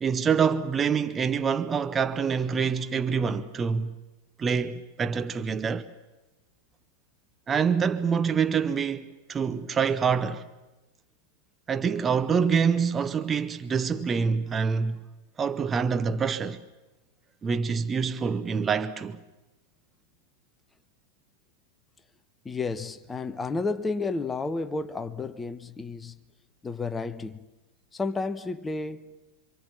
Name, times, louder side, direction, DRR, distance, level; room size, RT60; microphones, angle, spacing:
voice 1, 0.0-4.0 4.4-5.9 7.5-10.4 11.7-15.0 15.4-16.6 17.4-19.2, right 6 dB, 20° right, 0.9 m, -26 dB
voice 2, 22.4-26.2 26.6-27.4 27.9-29.1, left 3 dB, 15° left, 1.1 m, -31 dB
27.0 x 25.0 x 7.4 m
figure-of-eight pair, 90°, 0 cm